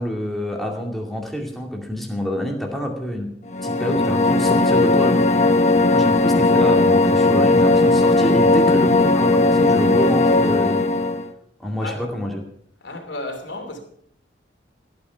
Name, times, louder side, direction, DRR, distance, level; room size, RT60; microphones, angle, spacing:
voice 1, 0.0-3.3 3.6-5.3 5.9-10.8 11.6-12.4, equal, ahead, 2.3 m, -27 dB
sound 1, 3.5-11.3, left 2 dB, 40° left, 0.9 m, -17 dB
voice 2, 12.8-13.8, left 2 dB, 85° left, 2.9 m, -32 dB
15.0 x 9.4 x 5.7 m
head